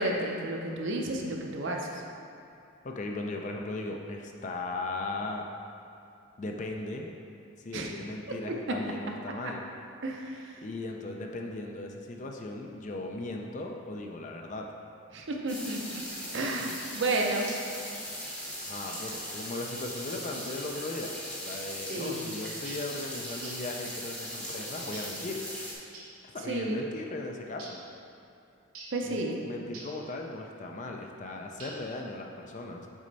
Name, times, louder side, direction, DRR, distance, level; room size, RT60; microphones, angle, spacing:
voice 1, 0.0-2.0 7.7-7.9 8.7-8.8 10.0-10.5 15.1-16.0 16.3-17.5 21.9-22.3 26.5-26.8 28.9-29.4, right 2 dB, 55° right, 1 dB, 0.6 m, -31 dB
voice 2, 2.8-5.5 6.4-7.1 7.6-9.6 10.6-14.7 18.6-21.1 21.4-25.4 26.3-27.8 29.0-32.9, left 2 dB, 35° left, 2 dB, 0.4 m, -37 dB
sound 1, 15.5-25.7, equal, 5° left, 0.8 m, -39 dB
sound 2, 22.6-22.9 23.4-23.7 24.9-25.2 25.9-26.2 27.6-27.9 28.7-29.0 29.7-30.0 31.6-32.0, right 2 dB, 85° right, 1.1 m, -46 dB
6.2 x 4.3 x 4.0 m, 2.5 s
head